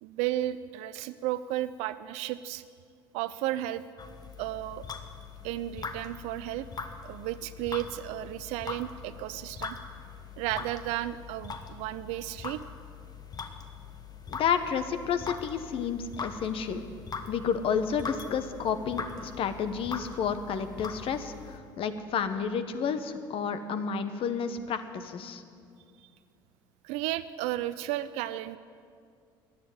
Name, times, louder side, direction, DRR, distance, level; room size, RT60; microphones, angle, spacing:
voice 1, 0.0-2.6 3.1-3.8 4.4-4.8 5.4-6.7 7.0-9.8 10.4-12.6 26.0-26.1 26.8-28.6, right 14 dB, 70° right, 14 dB, 0.4 m, -33 dB
sound 1, 4.0-21.6, left 5 dB, 35° left, 1.3 m, -42 dB
voice 2, 14.3-16.8 17.3-25.4, left 7 dB, 55° left, 10 dB, 1.0 m, -31 dB
11.5 x 9.5 x 9.3 m, 2.3 s
hypercardioid pair, 65°, 11 cm